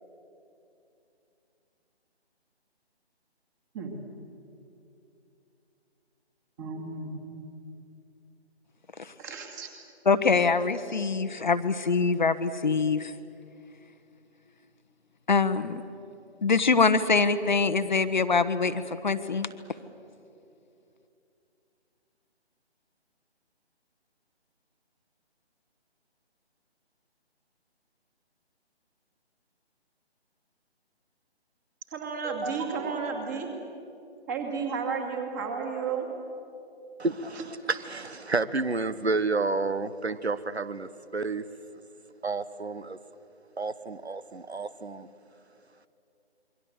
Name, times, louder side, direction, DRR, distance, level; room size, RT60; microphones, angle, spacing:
voice 1, 6.6-7.2 9.2-9.7 31.9-33.5 34.3-36.1 37.4-37.5, right 5 dB, 15° right, 4 dB, 2.4 m, -32 dB
voice 2, 10.0-13.1 15.3-15.8 16.4-19.5, left 4 dB, 45° left, 11 dB, 1.0 m, -24 dB
voice 3, 37.0-41.5 42.2-43.0 43.6-45.1, right 3 dB, 75° right, 15 dB, 1.2 m, -30 dB
27.5 x 23.0 x 8.0 m, 2.7 s
figure-of-eight pair, 150°, 33 cm